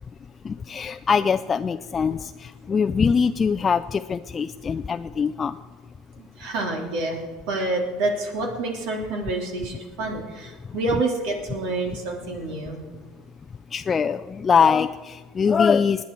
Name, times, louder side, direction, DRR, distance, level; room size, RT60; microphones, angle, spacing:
voice 1, 0.4-5.6 13.7-16.0, left 6 dB, 30° left, 8 dB, 0.4 m, -22 dB
voice 2, 6.2-12.8, right 2 dB, 70° right, 1 dB, 3.1 m, -28 dB
20.0 x 9.4 x 4.5 m, 1.3 s
hypercardioid pair, 85°, 0 cm